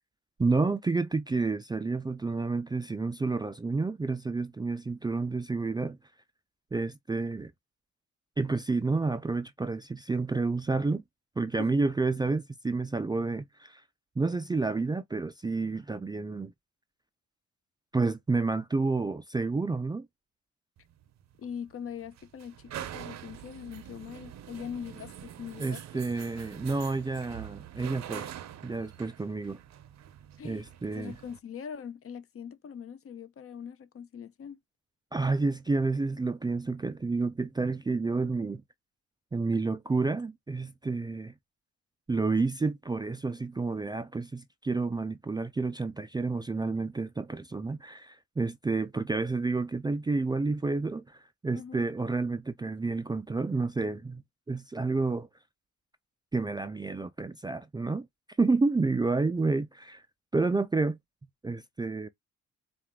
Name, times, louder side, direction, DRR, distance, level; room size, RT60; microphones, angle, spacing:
voice 1, 0.4-6.0 6.7-7.5 8.4-11.0 11.4-13.8 14.2-16.5 17.9-20.1 25.6-28.3 28.6-29.6 30.4-31.2 35.1-38.6 39.3-41.3 42.1-54.2 54.5-55.3 56.3-58.1 58.4-60.0 60.3-61.0 61.4-62.1, right 3 dB, 15° right, 0.4 m, -30 dB
sound 1, 20.8-31.4, right 11 dB, 60° right, 0.7 m, -45 dB
voice 2, 21.4-25.8 30.4-30.7 30.9-34.6 51.5-51.9, left 7 dB, 50° left, 0.8 m, -42 dB
4.3 x 2.4 x 3.6 m
cardioid pair, 90°, 30 cm